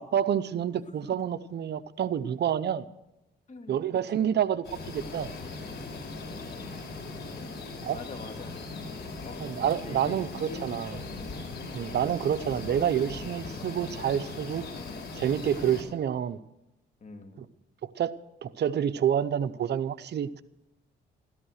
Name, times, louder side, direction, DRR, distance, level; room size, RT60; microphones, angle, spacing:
voice 1, 0.0-2.8 3.7-5.3 7.8-8.0 9.4-10.9 11.7-14.6 15.1-16.4 17.8-18.1 18.4-20.4, right 9 dB, 60° right, 14 dB, 0.7 m, -28 dB
voice 2, 3.5-3.8 4.1-4.4 5.5-5.8 7.2-8.7 9.2-11.4 11.8-12.1 17.0-17.5, left 3 dB, 35° left, 5 dB, 2.3 m, -45 dB
sound 1, 4.6-15.8, left 3 dB, 55° left, 5.1 m, -39 dB
14.0 x 13.5 x 6.4 m, 0.91 s
cardioid pair, 90°, 20 cm